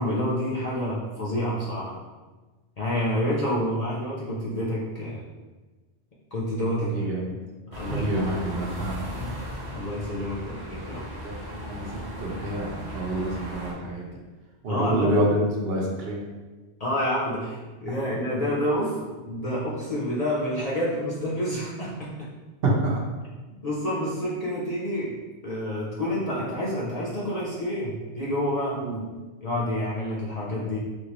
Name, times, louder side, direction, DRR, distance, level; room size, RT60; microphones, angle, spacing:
voice 1, 0.0-2.0 2.8-5.2 6.3-7.1 7.7-8.4 9.2-9.3 9.7-11.0 14.7-15.1 16.8-22.3 23.6-28.8 29.4-30.8, equal, 45° left, -5 dB, 0.6 m, -28 dB
voice 2, 6.8-7.4 7.9-9.0 10.7-11.0 11.2-14.2 14.6-16.2 22.6-23.0 28.8-29.0, right 1 dB, 65° right, -2 dB, 0.9 m, -27 dB
sound 1, 7.7-13.7, equal, 30° right, 0.6 m, -37 dB
3.4 x 2.5 x 2.9 m, 1.3 s
omnidirectional pair, 1.1 m